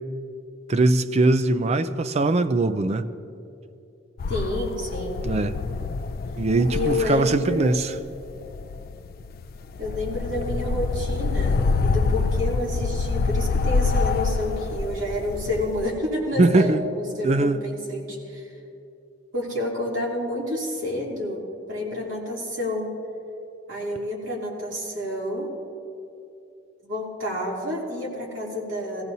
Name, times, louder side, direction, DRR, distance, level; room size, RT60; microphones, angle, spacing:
voice 1, 0.7-3.0 5.2-5.6 6.4-7.9 16.4-16.8 17.2-17.6, right 2 dB, 35° right, 0.4 m, -21 dB
sound 1, 4.2-15.9, left 4 dB, 50° left, 0.4 m, -26 dB
voice 2, 4.3-5.2 6.7-7.8 9.8-18.5 19.3-22.9 23.7-25.5 26.8-29.0, left 1 dB, 75° right, 2.9 m, -29 dB
18.0 x 15.0 x 2.7 m
head